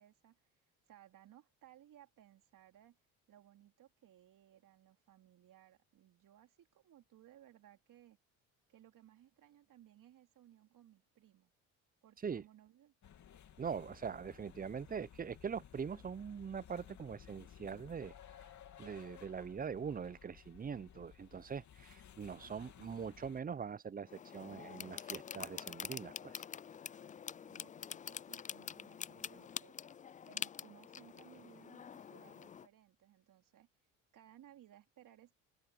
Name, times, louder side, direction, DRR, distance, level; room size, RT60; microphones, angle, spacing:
voice 1, 0.0-3.0 3.3-8.2 8.7-11.5 12.0-12.9 27.4-29.8 30.2-33.7 34.1-35.3, right 12 dB, 55° right, 3.4 m, -62 dB
sound 1, 13.0-23.4, left 9 dB, 50° left, 2.9 m, -58 dB
voice 2, 13.6-18.1 18.8-26.4, right 6 dB, 25° right, 0.7 m, -43 dB
sound 2, 24.1-32.7, left 8 dB, 20° left, 0.4 m, -46 dB
open air
supercardioid pair, 70°, 37 cm